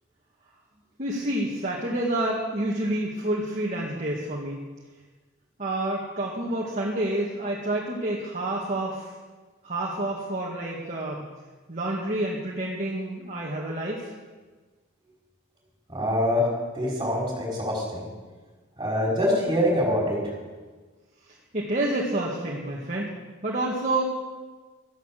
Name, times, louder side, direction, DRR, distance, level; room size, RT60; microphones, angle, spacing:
voice 1, 1.0-4.6 5.6-9.1 9.6-11.3 11.7-14.1 21.5-23.1 23.4-24.0, right 1 dB, 40° right, -3 dB, 2.0 m, -28 dB
voice 2, 15.9-16.5 16.7-18.1 18.8-20.2, left 1 dB, 20° right, -3 dB, 5.5 m, -24 dB
13.5 x 11.5 x 7.7 m, 1.3 s
head